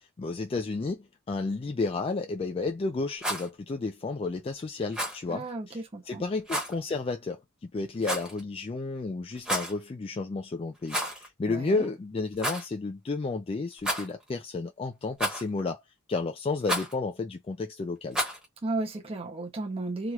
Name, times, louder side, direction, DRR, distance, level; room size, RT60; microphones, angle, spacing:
voice 1, 0.0-15.8 16.1-18.2, left 3 dB, 25° left, 0.3 m, -32 dB
Rattle, 3.1-3.5 4.9-5.2 6.5-6.7 8.0-8.4 9.3-9.8 10.8-11.3 11.5-11.6 12.4-12.6 13.8-14.3 15.2-15.6 16.6-16.9 18.1-18.4, equal, 5° right, 1.0 m, -31 dB
voice 2, 5.3-6.2 11.5-11.9 18.6-20.1, right 2 dB, 30° right, 0.7 m, -34 dB
3.0 x 3.0 x 2.3 m
head